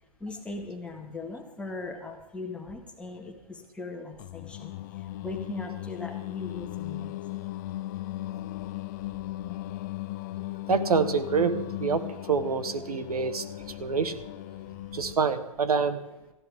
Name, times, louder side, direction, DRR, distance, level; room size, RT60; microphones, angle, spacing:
voice 1, 0.2-7.5 13.8-13.9 14.7-14.8, left 3 dB, 5° left, 1 dB, 1.9 m, -40 dB
Singing, 4.2-15.3, left 15 dB, 30° left, 0.4 m, -37 dB
voice 2, 10.7-13.4 13.8-14.2 14.9-16.0, right 5 dB, 80° right, 11 dB, 1.5 m, -26 dB
18.5 x 14.5 x 3.7 m, 0.97 s
hypercardioid pair, 135°, 19 cm